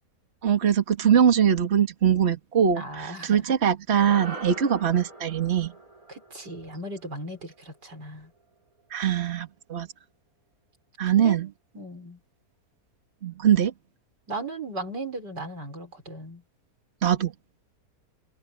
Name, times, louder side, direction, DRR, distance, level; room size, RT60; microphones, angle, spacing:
voice 1, 0.4-5.7 8.9-9.9 11.0-11.5 13.2-13.7 17.0-17.3, right 8 dB, 40° right, 2.0 m, -22 dB
voice 2, 2.8-3.4 6.1-8.3 11.1-11.5 11.7-12.2 14.3-16.4, right 2 dB, 85° right, 5.9 m, -37 dB
sound 1, 3.9-8.4, right 2 dB, 60° right, 7.1 m, -43 dB
omnidirectional pair, 1.8 m